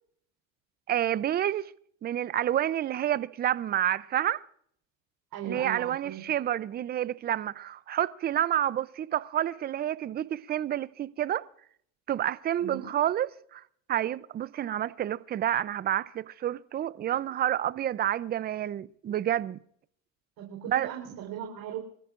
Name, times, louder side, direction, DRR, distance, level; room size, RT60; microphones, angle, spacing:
voice 1, 0.9-1.7 2.0-4.4 5.4-11.4 12.1-13.6 13.9-19.6 20.7-20.9, right 11 dB, 25° right, 0.5 m, -29 dB
voice 2, 5.3-6.2 12.6-12.9 20.4-21.8, right 9 dB, 55° right, 4.0 m, -38 dB
25.0 x 14.5 x 2.5 m
supercardioid pair, 100°, 41 cm